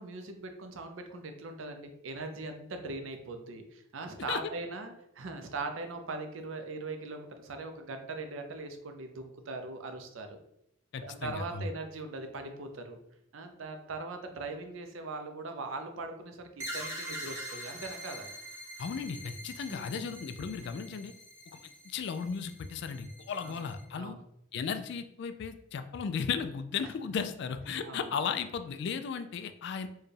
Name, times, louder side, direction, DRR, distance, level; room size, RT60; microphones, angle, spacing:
voice 1, 0.0-10.4 11.0-13.0 13.3-18.3 19.7-20.1 23.4-23.6 23.9-24.2 27.8-28.1, right 3 dB, 80° right, 6 dB, 0.5 m, -40 dB
voice 2, 10.9-11.7 18.8-21.1 21.5-21.6 21.8-24.2 24.5-29.9, left 6 dB, 60° left, 9 dB, 0.3 m, -35 dB
sound 1, 16.6-23.8, equal, 15° right, 0.9 m, -44 dB
4.5 x 2.2 x 3.2 m, 0.79 s
head